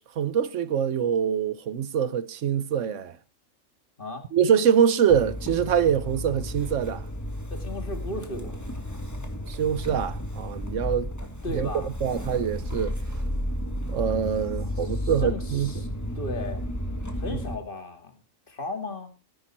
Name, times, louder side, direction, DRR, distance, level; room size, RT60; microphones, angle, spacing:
voice 1, 0.0-3.1 4.3-7.0 9.5-11.1 11.5-13.0 13.9-15.7, right 8 dB, 75° right, 1.1 m, -24 dB
Motor vehicle (road) / Engine starting, 5.1-17.6, equal, 15° left, 1.6 m, -33 dB
voice 2, 7.5-8.6 11.4-11.9 14.8-15.9 16.2-16.7 17.2-18.1 18.5-19.1, left 2 dB, 45° left, 2.0 m, -35 dB
13.5 x 10.5 x 4.2 m
omnidirectional pair, 1.3 m